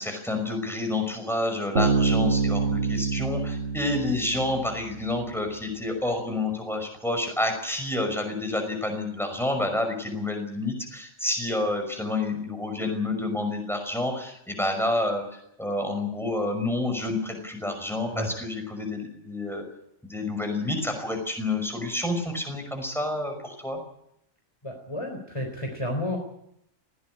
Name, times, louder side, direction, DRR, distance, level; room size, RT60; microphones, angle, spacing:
voice 1, 0.0-19.6 20.0-23.8, left 2 dB, ahead, 5 dB, 5.8 m, -29 dB
Bass guitar, 1.8-5.3, right 4 dB, 80° right, 2.4 m, -26 dB
voice 2, 24.6-26.2, left 1 dB, 20° left, 3 dB, 3.8 m, -31 dB
20.5 x 17.0 x 9.8 m, 0.77 s
omnidirectional pair, 1.4 m